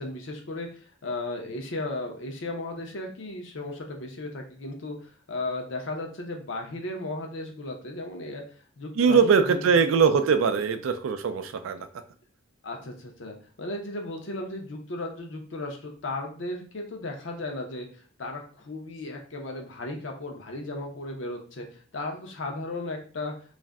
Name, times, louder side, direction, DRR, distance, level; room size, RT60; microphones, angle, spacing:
voice 1, 0.0-8.4 8.8-9.6 10.5-10.6 12.6-23.3, left 2 dB, 70° left, 2 dB, 0.7 m, -35 dB
voice 2, 9.0-11.9, right 6 dB, 85° right, 9 dB, 0.4 m, -21 dB
2.4 x 2.1 x 3.4 m, 0.40 s
head